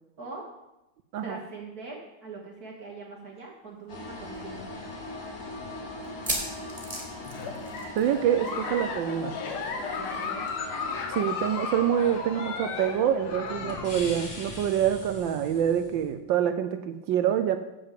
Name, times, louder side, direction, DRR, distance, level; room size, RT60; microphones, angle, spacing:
voice 1, 1.2-4.8 9.9-10.5, right 3 dB, 50° right, -2 dB, 1.6 m, -42 dB
sound 1, 3.4-3.5 3.8-3.9 4.5-4.6 6.0-8.2 8.4-8.7 8.9-9.0 10.5-10.6, right 1 dB, 20° right, 1.7 m, -35 dB
sound 2, 3.9-16.1, left 2 dB, 60° left, 2.9 m, -40 dB
Giggle, 7.3-14.0, left 5 dB, 85° left, 1.9 m, -35 dB
voice 2, 8.0-9.4 11.1-17.6, right 9 dB, 75° right, 9 dB, 1.2 m, -26 dB
7.1 x 6.8 x 7.4 m, 0.95 s
omnidirectional pair, 2.3 m